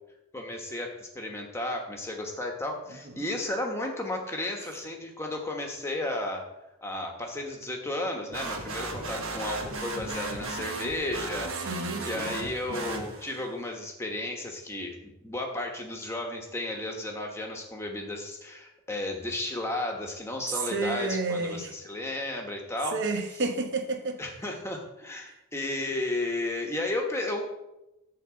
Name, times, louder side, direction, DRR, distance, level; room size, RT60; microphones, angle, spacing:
voice 1, 0.3-6.5 6.8-14.9 15.2-23.1 24.2-27.6, left 1 dB, 10° left, 1.3 m, -33 dB
sound 1, 8.3-13.5, right 3 dB, 65° right, 1.4 m, -35 dB
voice 2, 11.7-12.3 20.7-21.7 22.9-24.2, right 3 dB, 50° right, 1.1 m, -30 dB
11.0 x 3.9 x 7.6 m
head